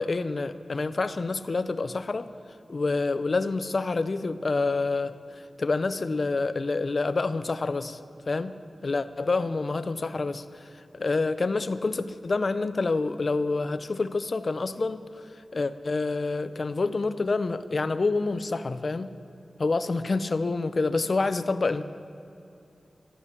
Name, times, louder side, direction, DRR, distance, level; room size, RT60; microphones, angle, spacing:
voice 1, 0.0-2.3 2.7-8.0 8.3-8.6 8.8-15.0 15.3-19.1 19.6-21.8, left 3 dB, 50° left, 11 dB, 0.7 m, -27 dB
14.0 x 11.5 x 8.4 m, 2.8 s
wide cardioid pair, 85°, 0 cm